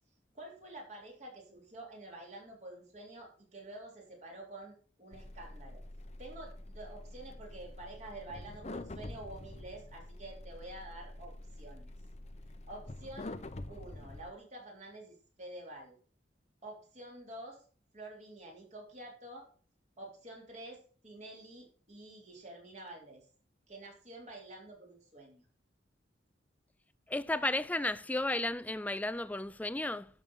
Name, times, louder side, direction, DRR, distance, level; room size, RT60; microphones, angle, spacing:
voice 1, 0.3-5.8 6.2-11.9 12.7-13.3 13.7-15.9 16.6-17.7 17.9-19.5 20.0-23.3 23.7-25.4, right 1 dB, 40° right, 3.6 m, -48 dB
sound 1, 5.1-14.3, left 1 dB, 35° left, 0.8 m, -46 dB
voice 2, 27.1-30.1, left 2 dB, 10° left, 0.4 m, -33 dB
11.5 x 6.5 x 5.5 m
head